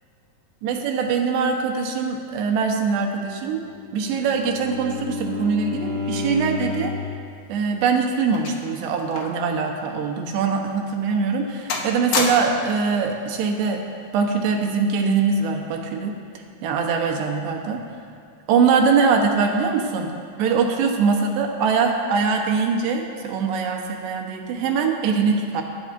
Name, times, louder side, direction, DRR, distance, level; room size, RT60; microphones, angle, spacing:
voice 1, 0.6-3.6 3.9-6.9 7.5-13.9 14.1-16.2 16.6-17.8 18.5-25.6, right 5 dB, 85° right, 2 dB, 3.3 m, -22 dB
Bowed string instrument, 3.5-7.2, left 4 dB, 30° right, 2.0 m, -31 dB
sound 1, 7.4-9.5 9.8-10.0 10.6-10.7 11.2-11.4 11.7-12.7 13.7-14.0, left 4 dB, 70° left, 1.8 m, -29 dB
23.5 x 11.0 x 2.7 m, 2.3 s
omnidirectional pair, 4.8 m